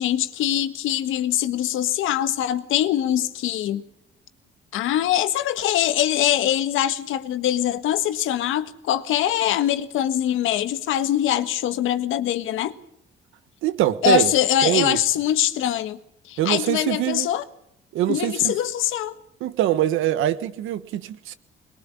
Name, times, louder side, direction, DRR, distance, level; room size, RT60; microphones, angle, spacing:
voice 1, 0.0-3.8 4.7-12.7 14.0-16.0 16.2-17.4 18.1-19.1, left 11 dB, 90° left, 1.6 m, -23 dB
voice 2, 13.6-14.3 14.6-15.0 16.4-17.3 17.9-18.5 19.4-21.3, right 12 dB, 90° right, 1.4 m, -23 dB
22.0 x 21.5 x 8.6 m
cardioid pair, 90°, 20 cm